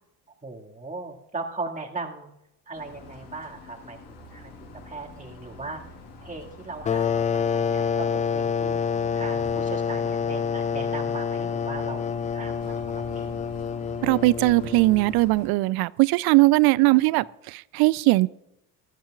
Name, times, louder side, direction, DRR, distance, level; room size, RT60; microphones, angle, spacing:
voice 1, 0.4-2.3 2.7-4.5 4.8-5.8 6.2-8.8 9.1-12.1 12.3-13.4 16.9-17.3, right 3 dB, 15° right, 2.1 m, -38 dB
sound 1, 2.7-15.5, left 2 dB, 60° left, 5.9 m, -46 dB
sound 2, 6.9-15.2, left 7 dB, 20° left, 0.4 m, -27 dB
voice 2, 14.0-18.3, right 21 dB, 55° right, 0.5 m, -20 dB
19.5 x 13.0 x 2.4 m
hypercardioid pair, 60°, 45 cm